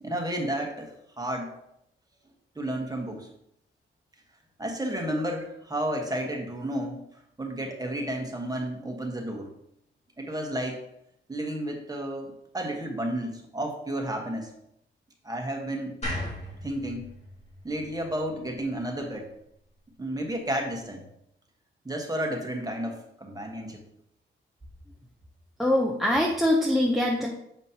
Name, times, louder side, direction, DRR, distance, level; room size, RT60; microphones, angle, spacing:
voice 1, 0.0-1.5 2.5-3.3 4.6-7.0 7.4-9.5 10.2-10.8 11.3-14.5 15.2-16.0 16.6-17.1 17.6-19.3 20.0-21.0 21.8-23.8, right 1 dB, 20° right, 1 dB, 1.3 m, -32 dB
sound 1, 16.0-19.2, left 1 dB, 30° left, 2.5 m, -37 dB
voice 2, 25.6-27.3, left 1 dB, ahead, -1 dB, 0.7 m, -23 dB
7.2 x 5.1 x 2.9 m, 0.77 s
cardioid pair, 85°, 21 cm